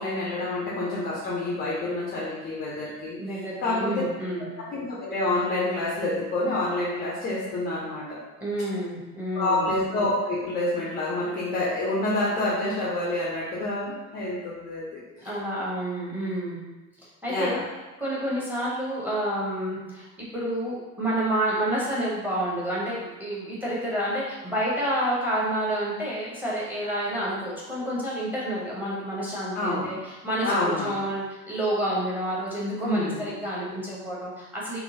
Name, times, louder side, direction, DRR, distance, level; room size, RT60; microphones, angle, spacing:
voice 1, 0.0-3.2 3.6-3.9 4.6-8.2 9.3-15.0 17.3-17.6 29.5-29.9 30.4-31.0 32.8-33.3, left 2 dB, 20° left, -5 dB, 0.5 m, -28 dB
voice 2, 3.2-4.5 8.4-9.7 15.2-16.6 17.2-17.6 18.0-34.8, right 1 dB, 5° right, -6 dB, 0.8 m, -29 dB
3.7 x 2.1 x 2.7 m, 1.2 s
figure-of-eight pair, 75°, 48 cm